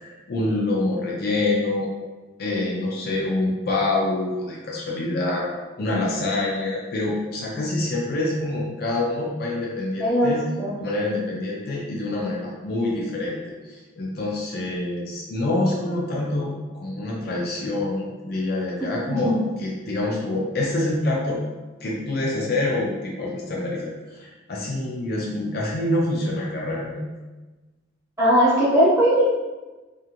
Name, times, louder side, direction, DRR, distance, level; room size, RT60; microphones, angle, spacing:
voice 1, 0.0-1.9 2.4-5.5 5.8-10.4 10.8-13.4 13.7-21.4 21.8-27.0, left 2 dB, 50° left, -3 dB, 0.5 m, -26 dB
voice 2, 10.0-10.8 19.1-19.4 28.2-29.2, equal, 15° right, -9 dB, 0.9 m, -19 dB
2.5 x 2.5 x 2.8 m, 1.2 s
head